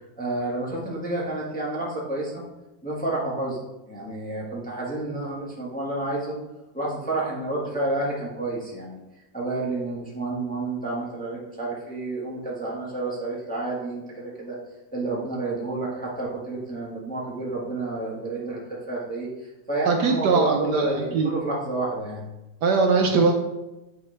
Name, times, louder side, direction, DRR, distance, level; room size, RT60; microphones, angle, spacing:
voice 1, 0.2-2.4 2.8-3.6 3.9-6.4 6.7-9.0 9.3-14.6 14.9-19.3 19.7-22.3, right 2 dB, 5° left, -5 dB, 1.1 m, -30 dB
voice 2, 19.8-21.3 22.6-23.3, right 4 dB, 70° right, 3 dB, 1.2 m, -21 dB
8.7 x 4.1 x 3.3 m, 1.0 s
omnidirectional pair, 2.0 m